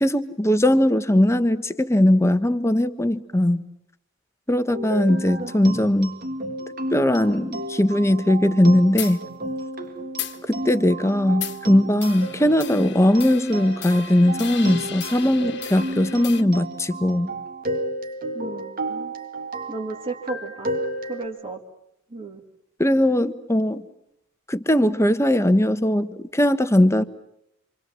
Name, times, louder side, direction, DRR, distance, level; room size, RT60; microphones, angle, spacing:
voice 1, 0.0-3.6 4.5-6.2 6.9-9.2 10.5-17.3 22.8-23.8 24.5-27.0, left 1 dB, 15° left, 10 dB, 1.2 m, -19 dB
sound 1, 4.7-21.2, right 1 dB, 45° right, 1.9 m, -32 dB
sound 2, 9.0-9.2 10.2-10.4 11.4-11.6 12.0-16.4, left 10 dB, 55° left, 1.6 m, -35 dB
voice 2, 18.3-19.1 19.7-20.7 21.1-21.6 22.1-22.4, right 3 dB, 25° right, -1 dB, 2.3 m, -33 dB
28.0 x 26.5 x 7.6 m, 0.78 s
head